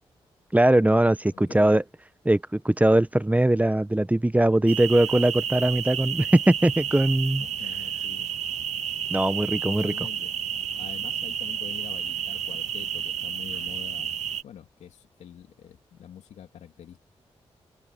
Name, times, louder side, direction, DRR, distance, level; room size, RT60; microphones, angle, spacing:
voice 1, 0.5-1.8 2.2-7.4 9.1-9.9, right 1 dB, 15° right, 0.9 m, -21 dB
voice 2, 1.3-1.8 7.4-8.3 9.6-10.3 10.7-14.1 14.4-17.0, left 9 dB, 85° left, 2.6 m, -45 dB
sound 1, 4.7-14.4, right 9 dB, 80° right, 1.5 m, -31 dB
supercardioid pair, 45°, 11 cm